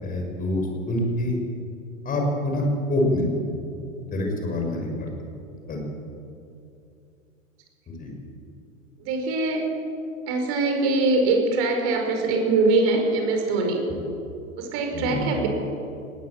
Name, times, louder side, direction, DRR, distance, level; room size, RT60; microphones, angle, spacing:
voice 1, 0.0-1.3 2.0-3.3 4.1-4.9 5.7-5.8 8.0-8.1 14.9-15.2, left 1 dB, 20° left, 1 dB, 5.7 m, -25 dB
voice 2, 9.0-9.7 10.3-13.8 14.6-15.5, right 3 dB, 35° right, 3 dB, 5.1 m, -23 dB
20.0 x 17.5 x 7.4 m, 2.6 s
figure-of-eight pair, 100°, 40 cm